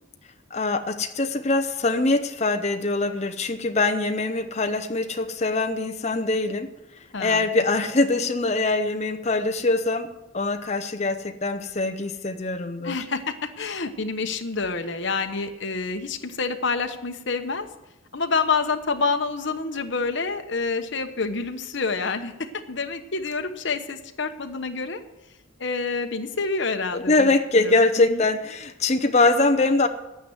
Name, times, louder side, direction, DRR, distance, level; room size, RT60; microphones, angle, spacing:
voice 1, 0.5-6.7 7.2-13.0 26.9-29.9, left 2 dB, 30° left, 6 dB, 0.7 m, -23 dB
voice 2, 7.1-7.4 12.8-17.7 18.1-25.0 25.6-27.3 27.6-28.2, left 4 dB, 55° left, 7 dB, 1.0 m, -28 dB
10.5 x 9.2 x 7.9 m, 0.96 s
head